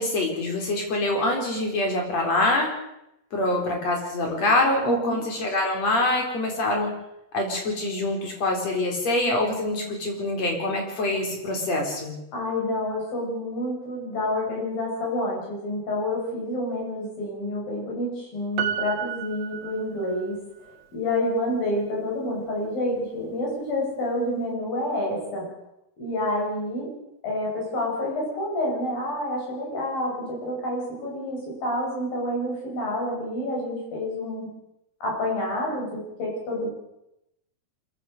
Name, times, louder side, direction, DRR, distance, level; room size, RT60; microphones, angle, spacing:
voice 1, 0.0-2.7 3.3-6.9 7.3-12.1, left 2 dB, 45° left, 2 dB, 5.1 m, -25 dB
voice 2, 4.8-5.2 12.3-20.4 20.9-25.5 26.0-26.9 27.2-34.5 35.0-36.7, left 1 dB, 65° left, -3 dB, 9.3 m, -28 dB
Piano, 18.6-20.4 20.7-20.8, right 9 dB, 90° right, 1.5 m, -31 dB
25.5 x 15.0 x 6.7 m, 0.84 s
omnidirectional pair, 4.4 m